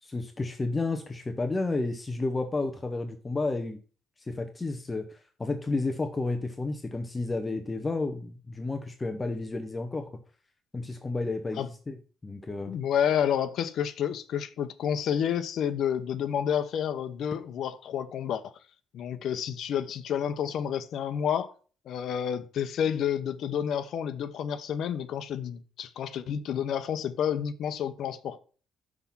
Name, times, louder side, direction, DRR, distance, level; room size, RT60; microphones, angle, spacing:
voice 1, 0.0-3.8 4.2-10.1 10.7-12.0 12.2-12.8, left 3 dB, 15° left, 0.7 m, -31 dB
voice 2, 12.7-18.5 18.9-21.5 21.9-28.4, left 8 dB, 55° left, 0.8 m, -30 dB
6.1 x 5.8 x 7.2 m
cardioid pair, 170°, 0 cm